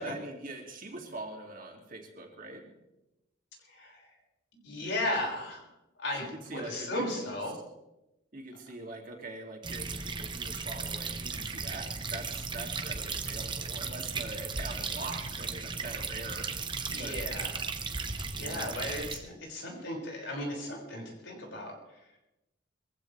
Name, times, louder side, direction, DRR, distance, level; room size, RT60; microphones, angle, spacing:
voice 1, 0.0-2.7 6.2-7.4 8.3-16.5 16.9-17.2 18.4-18.7, right 2 dB, 50° right, 1 dB, 2.8 m, -43 dB
voice 2, 3.7-4.1 4.5-5.7 6.0-7.6 16.8-17.7 18.3-22.0, left 1 dB, 75° left, -2 dB, 6.1 m, -36 dB
sound 1, 9.6-19.2, right 4 dB, 25° right, 1.1 m, -36 dB
22.5 x 15.5 x 3.4 m, 0.94 s
head